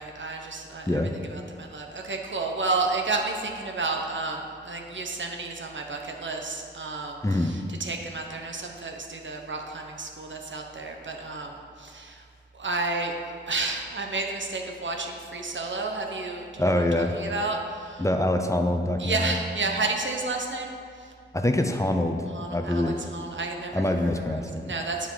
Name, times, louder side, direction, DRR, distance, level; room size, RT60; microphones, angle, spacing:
voice 1, 0.0-12.2 12.5-13.1 13.5-18.1 19.0-21.1 22.3-25.1, right 3 dB, 80° right, 2 dB, 1.0 m, -31 dB
voice 2, 7.2-7.5 16.6-17.1 18.0-19.3 21.3-22.2 22.5-23.0 23.7-24.7, left 1 dB, 15° left, 4 dB, 0.6 m, -25 dB
9.3 x 5.0 x 5.7 m, 2.2 s
wide cardioid pair, 75°, 19 cm